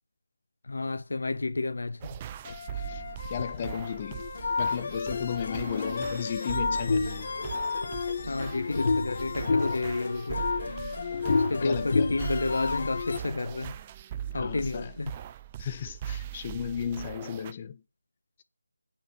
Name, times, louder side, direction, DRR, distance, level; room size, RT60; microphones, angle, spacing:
voice 1, 0.6-2.2 8.2-10.5 11.4-13.8 14.3-15.1, left 3 dB, 65° left, 0.7 m, -31 dB
sound 1, 2.0-17.5, right 11 dB, 20° right, 0.6 m, -41 dB
sound 2, 2.5-13.2, left 4 dB, 45° left, 1.4 m, -30 dB
voice 2, 3.3-4.3 4.6-7.5 8.2-8.4 11.6-12.2 14.3-14.9 15.6-17.8, left 8 dB, 25° left, 0.8 m, -35 dB
9.2 x 6.8 x 6.1 m
figure-of-eight pair, 165°, 0 cm